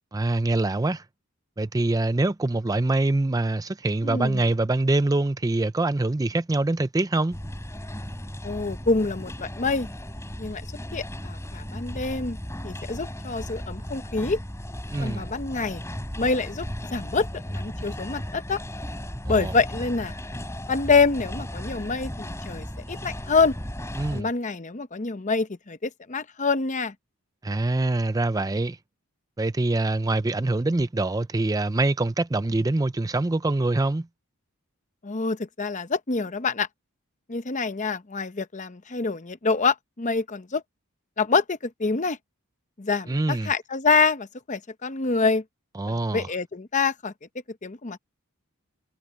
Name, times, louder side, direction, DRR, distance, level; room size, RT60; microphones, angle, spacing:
voice 1, 0.1-1.0 1.6-7.4 14.9-15.3 19.3-19.5 24.0-24.3 27.4-28.8 29.4-34.1 43.1-43.5 45.8-46.3, right 2 dB, 15° right, 0.4 m, -24 dB
voice 2, 4.0-4.4 8.4-9.9 10.4-10.6 10.9-12.4 12.6-14.4 15.0-15.8 16.2-16.7 16.9-18.6 19.3-20.1 20.7-23.5 24.1-26.9 35.0-36.7 37.3-40.6 41.2-42.2 42.8-45.4 45.9-47.1 47.6-48.0, left 4 dB, 35° left, 0.8 m, -26 dB
sound 1, 7.3-24.2, equal, 15° left, 4.7 m, -36 dB
head